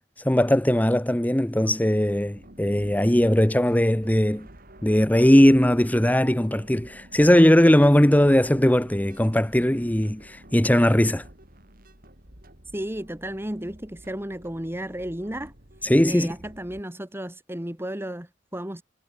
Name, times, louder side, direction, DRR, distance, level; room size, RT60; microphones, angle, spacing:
voice 1, 0.2-4.5 4.8-11.2 15.8-16.3, left 1 dB, 10° left, 1.0 m, -19 dB
sound 1, 2.4-16.8, right 1 dB, 50° right, 6.2 m, -50 dB
voice 2, 12.7-15.5 16.1-18.8, right 1 dB, 15° right, 2.4 m, -33 dB
head